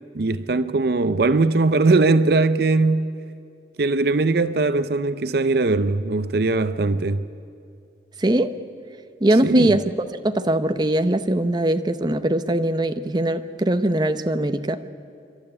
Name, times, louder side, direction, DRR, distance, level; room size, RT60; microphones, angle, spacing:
voice 1, 0.1-3.1 3.8-7.3 9.4-9.7, right 3 dB, 60° right, 0.6 m, -20 dB
voice 2, 8.2-8.5 9.2-9.8 10.1-14.8, right 1 dB, 25° right, 0.8 m, -21 dB
27.5 x 12.5 x 9.7 m
head